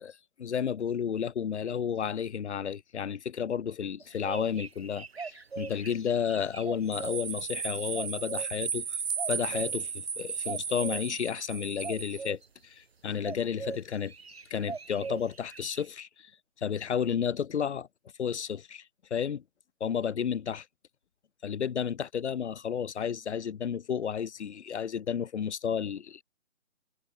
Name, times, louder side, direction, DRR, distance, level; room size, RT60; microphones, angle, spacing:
voice 1, 0.0-9.0 9.3-14.1 14.5-16.3 16.6-17.9 18.2-18.9 19.1-19.4 19.8-20.7 21.4-26.2, left 8 dB, 60° left, 0.5 m, -32 dB
sound 1, 4.0-7.2 7.9-8.6 9.2-9.7 10.5-11.0 11.8-12.5 13.2-13.8 14.1-15.9, right 5 dB, 50° right, 1.8 m, -40 dB
sound 2, 6.9-12.3, right 6 dB, 90° right, 1.1 m, -35 dB
hypercardioid pair, 175°, 39 cm